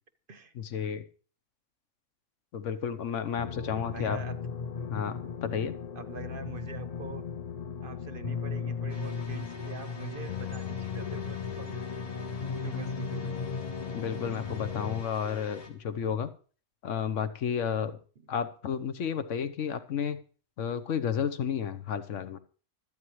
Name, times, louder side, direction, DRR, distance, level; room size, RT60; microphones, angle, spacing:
voice 1, 0.5-1.1 2.5-4.2 4.9-5.7 13.9-16.3 16.8-18.0 18.3-20.2 20.6-22.4, left 7 dB, 65° left, 11 dB, 1.2 m, -32 dB
sound 1, 3.4-15.0, left 6 dB, 45° left, 0.5 m, -36 dB
voice 2, 3.9-4.4 6.0-7.2 7.8-11.8 12.2-12.3 12.6-13.3, right 6 dB, 50° right, 11 dB, 0.9 m, -44 dB
sound 2, 8.9-15.7, left 1 dB, 90° left, 2.5 m, -46 dB
24.5 x 8.8 x 3.1 m, 0.40 s
omnidirectional pair, 1.4 m